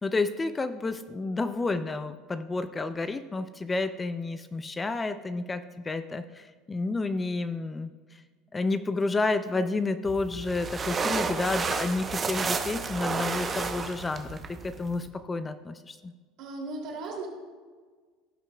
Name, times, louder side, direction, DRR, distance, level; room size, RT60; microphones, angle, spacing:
voice 1, 0.0-8.2 8.5-16.1, left 3 dB, 20° left, 11 dB, 0.4 m, -30 dB
sound 1, 10.1-15.1, right 4 dB, 30° right, 0.8 m, -31 dB
voice 2, 16.4-17.3, right 3 dB, 60° right, -1 dB, 2.6 m, -36 dB
16.0 x 5.8 x 2.3 m, 1.5 s
supercardioid pair, 95°, 0 cm